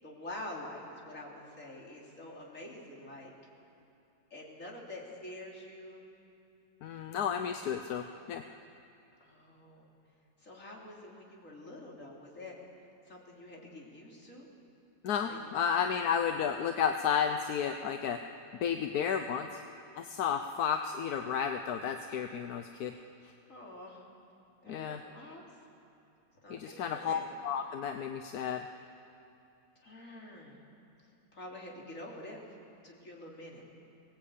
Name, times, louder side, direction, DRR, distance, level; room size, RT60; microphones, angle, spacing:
voice 1, 0.0-3.3 4.3-6.0 9.2-9.9 10.4-12.6 13.0-14.5 15.3-15.5 23.5-24.1 24.6-25.4 26.4-27.2 29.8-30.6 31.3-32.4 32.8-33.6, left 1 dB, 45° left, -2 dB, 3.5 m, -47 dB
voice 2, 6.8-8.4 15.0-18.2 18.6-19.6 20.0-22.9 24.7-25.0 26.5-28.6, left 7 dB, 65° left, 6 dB, 1.2 m, -32 dB
23.0 x 18.5 x 8.4 m, 2.7 s
omnidirectional pair, 2.0 m